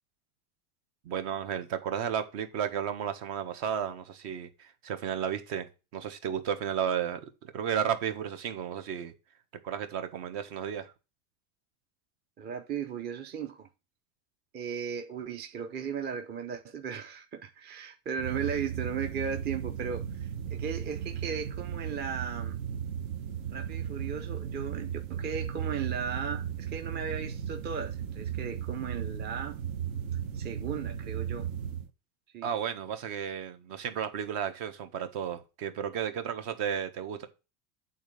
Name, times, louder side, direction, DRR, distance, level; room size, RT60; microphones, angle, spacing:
voice 1, 1.0-9.1 9.6-10.9 32.4-37.3, right 8 dB, 55° right, 1.5 m, -33 dB
voice 2, 12.4-13.7 14.5-22.6 23.5-29.6 30.3-31.5 32.3-32.5, right 7 dB, 25° right, 0.6 m, -36 dB
sound 1, 18.2-31.9, right 8 dB, 70° right, 1.3 m, -36 dB
8.7 x 4.0 x 6.9 m
supercardioid pair, 150°, 44 cm